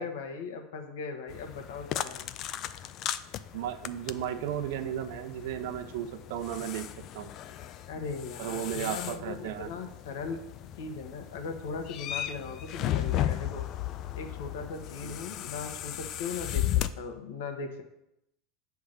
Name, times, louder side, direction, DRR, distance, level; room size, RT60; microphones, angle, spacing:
voice 1, 0.0-2.4 7.9-10.4 10.8-13.7 14.2-16.6 17.0-17.8, left 5 dB, 80° left, 5 dB, 1.1 m, -38 dB
sound 1, 1.3-16.9, left 12 dB, 40° left, 0.3 m, -36 dB
voice 2, 3.5-6.9 7.1-7.3 8.4-9.7 15.0-15.1, right 10 dB, 70° right, 8 dB, 0.7 m, -34 dB
8.6 x 3.6 x 6.5 m, 0.84 s
supercardioid pair, 145°, 0 cm